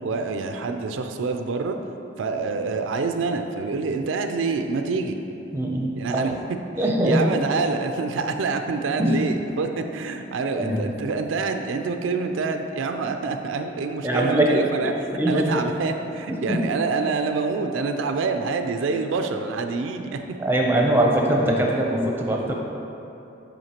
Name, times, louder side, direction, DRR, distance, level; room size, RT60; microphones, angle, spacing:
voice 1, 0.0-1.8 2.2-5.2 6.0-6.6 7.0-14.9 15.3-20.2, right 4 dB, 85° right, 6 dB, 0.4 m, -26 dB
voice 2, 5.5-6.3 6.8-7.3 9.0-9.1 10.6-10.8 14.0-15.6 16.3-16.6 20.4-22.6, right 1 dB, 10° right, -1 dB, 0.6 m, -22 dB
7.8 x 5.1 x 2.9 m, 2.8 s
head